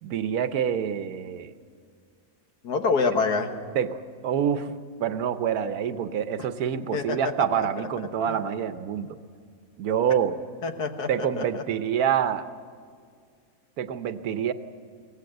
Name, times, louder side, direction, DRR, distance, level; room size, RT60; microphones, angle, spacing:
voice 1, 0.0-1.5 3.7-4.7 5.0-9.2 9.8-10.4 11.1-12.5 13.8-14.5, right 8 dB, 70° right, 11 dB, 1.3 m, -26 dB
voice 2, 2.6-3.5 6.9-7.3 7.8-7.9 8.3-8.4 10.6-11.6, left 4 dB, 85° left, 6 dB, 1.9 m, -26 dB
23.0 x 17.0 x 7.9 m, 2.1 s
omnidirectional pair, 1.7 m